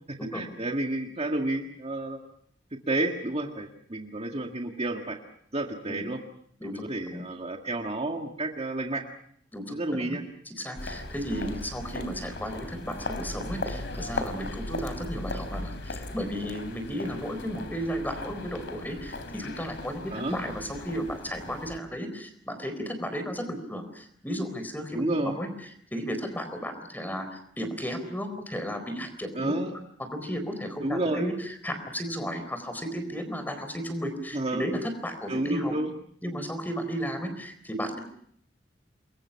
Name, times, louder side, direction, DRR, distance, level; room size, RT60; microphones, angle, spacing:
voice 1, 0.1-2.2 2.9-5.2 5.5-6.2 6.7-9.0 9.7-10.2 20.1-20.4 24.9-25.4 29.3-29.8 30.8-31.3 34.3-34.6 35.3-35.9, right 2 dB, 35° right, 3 dB, 1.8 m, -30 dB
voice 2, 9.5-10.2 10.5-25.5 25.9-29.5 30.1-31.3 31.6-35.7 36.2-38.0, equal, 10° left, 8 dB, 4.2 m, -34 dB
sound 1, 10.8-21.8, left 2 dB, 70° left, 3.3 m, -37 dB
28.5 x 22.5 x 5.8 m, 0.66 s
head